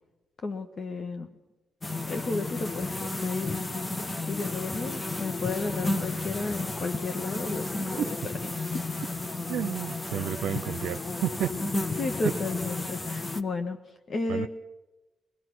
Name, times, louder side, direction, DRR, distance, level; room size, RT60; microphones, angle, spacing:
voice 1, 0.4-1.3 2.1-3.8 4.3-8.2 8.7-8.9 12.0-14.5, left 3 dB, 50° left, 6 dB, 1.6 m, -33 dB
sound 1, 1.8-13.4, left 2 dB, 20° left, 1.2 m, -33 dB
voice 2, 9.5-11.5 14.3-14.5, right 10 dB, 80° right, 10 dB, 0.7 m, -31 dB
24.5 x 19.0 x 6.3 m, 1.1 s
cardioid pair, 70°, 0 cm